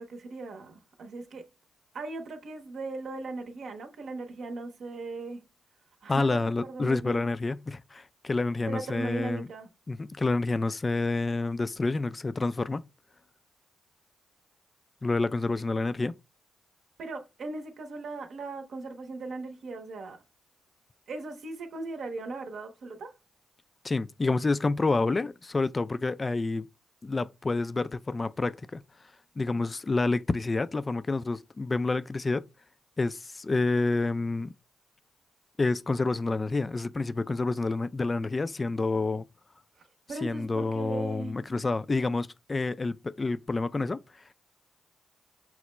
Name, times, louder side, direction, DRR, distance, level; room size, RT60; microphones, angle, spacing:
voice 1, 0.0-1.4 1.9-5.4 6.0-7.3 8.7-9.7 17.0-20.2 21.1-23.1 40.1-41.4, right 3 dB, 70° right, 0.7 m, -38 dB
voice 2, 6.1-9.5 9.9-12.8 15.0-16.1 23.8-26.7 27.0-28.8 29.4-32.5 33.0-34.5 35.6-39.3 40.2-44.0, left 3 dB, 35° left, 0.3 m, -28 dB
5.9 x 2.1 x 3.1 m
cardioid pair, 65°, 0 cm